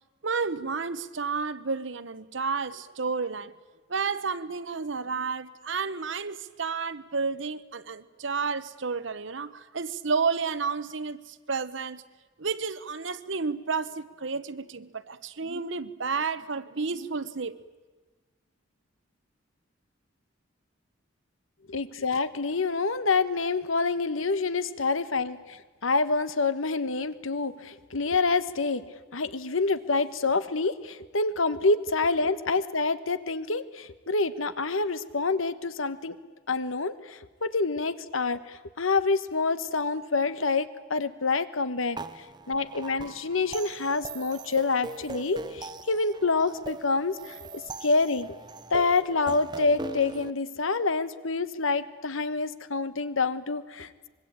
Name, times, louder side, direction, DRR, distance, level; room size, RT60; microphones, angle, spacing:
voice 1, 0.2-3.5 3.9-12.0 12.4-17.6, right 5 dB, 70° right, 1.0 m, -31 dB
voice 2, 21.7-28.8 29.1-36.1 36.5-42.0 42.5-48.3 48.7-54.1, left 3 dB, 85° left, 1.2 m, -27 dB
sound 1, 42.0-50.3, right 2 dB, 20° right, 0.7 m, -40 dB
25.0 x 22.5 x 8.7 m
head